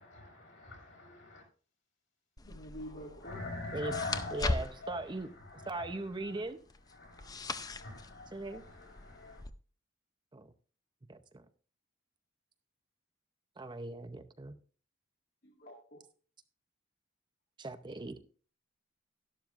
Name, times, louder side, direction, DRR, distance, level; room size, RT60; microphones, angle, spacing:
voice 1, 0.0-1.4 3.2-6.5 6.9-9.4, left 3 dB, 70° left, 5.6 m, -44 dB
voice 2, 2.4-3.4 15.4-16.0, equal, 50° left, 1.8 m, -47 dB
sound 1, 2.4-9.5, left 2 dB, 20° left, 0.5 m, -41 dB
voice 3, 4.3-6.6 8.3-8.6 10.3-10.5 11.1-11.5 13.6-14.5 17.6-18.1, right 2 dB, 25° right, 0.6 m, -40 dB
12.0 x 12.0 x 2.4 m
head